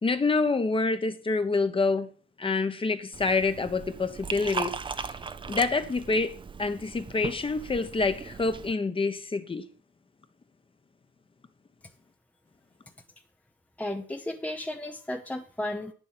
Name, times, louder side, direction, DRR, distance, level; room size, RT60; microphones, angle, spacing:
voice 1, 0.0-2.1 2.4-5.2 5.5-9.6, left 3 dB, 25° left, 1.1 m, -27 dB
Liquid, 3.1-8.7, right 5 dB, 25° right, 0.6 m, -38 dB
voice 2, 13.8-15.9, left 1 dB, 5° left, 0.7 m, -34 dB
9.3 x 7.2 x 5.7 m
cardioid pair, 90°, 20 cm